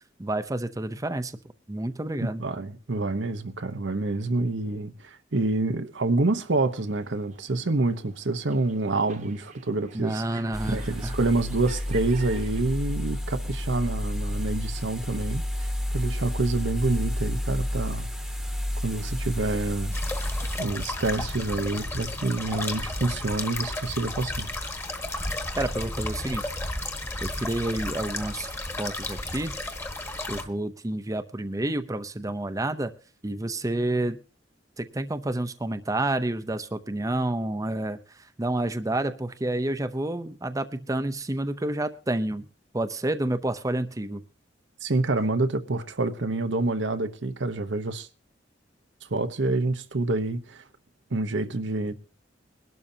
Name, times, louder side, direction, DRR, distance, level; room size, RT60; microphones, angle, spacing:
voice 1, 0.2-1.3 1.7-2.4 9.9-11.2 25.6-26.4 27.2-29.5 30.3-32.9 33.2-34.2 34.8-42.4 42.7-44.2, right 1 dB, 20° right, 0.7 m, -29 dB
voice 2, 2.4-18.1 18.8-19.9 20.6-24.5 44.8-48.1 49.1-50.6 51.1-51.9, right 2 dB, 75° right, 1.0 m, -27 dB
sound 1, 6.3-12.6, right 5 dB, 40° right, 1.2 m, -49 dB
sound 2, 10.5-20.6, left 1 dB, ahead, 1.1 m, -30 dB
sound 3, 19.9-30.4, left 1 dB, 15° left, 1.4 m, -33 dB
22.0 x 12.0 x 2.8 m
head